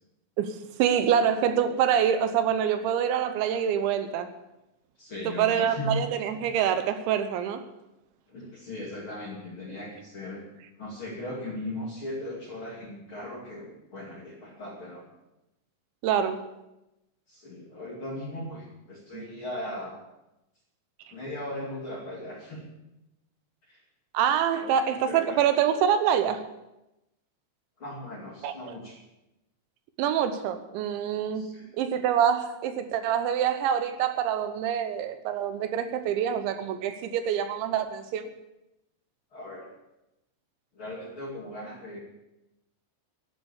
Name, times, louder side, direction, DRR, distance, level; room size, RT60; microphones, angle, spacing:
voice 1, 0.4-4.3 5.3-7.7 16.0-16.4 19.1-19.2 24.1-26.4 28.4-28.7 30.0-38.3, right 9 dB, 80° right, 3.1 m, -26 dB
voice 2, 5.0-6.0 8.3-10.4 10.8-15.0 17.3-20.0 21.1-22.6 23.7-23.8 24.5-24.7 25.1-25.4 27.8-29.0 31.3-31.7 39.3-39.7 40.7-42.0, left 1 dB, 35° left, 2.5 m, -38 dB
12.5 x 11.5 x 7.1 m
omnidirectional pair, 5.4 m